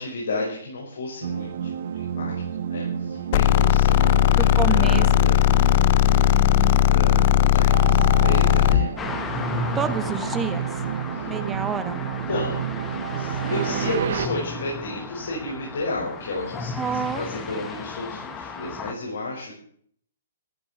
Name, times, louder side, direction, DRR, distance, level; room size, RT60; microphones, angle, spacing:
voice 1, 0.0-5.5 5.9-8.9 11.1-11.3 12.3-19.6, left 2 dB, 75° left, -3 dB, 5.8 m, -33 dB
sound 1, 1.2-14.3, right 9 dB, 60° right, 1.3 m, -30 dB
sound 2, 3.3-8.9, left 14 dB, 50° left, 0.8 m, -17 dB
voice 2, 4.4-5.1 9.7-10.7 11.3-12.0 16.8-17.2, right 6 dB, 15° right, 10 dB, 1.5 m, -28 dB
sound 3, 9.0-18.9, left 4 dB, 15° left, 1.8 m, -34 dB
14.5 x 11.5 x 7.2 m, 0.62 s
hypercardioid pair, 140°, 0 cm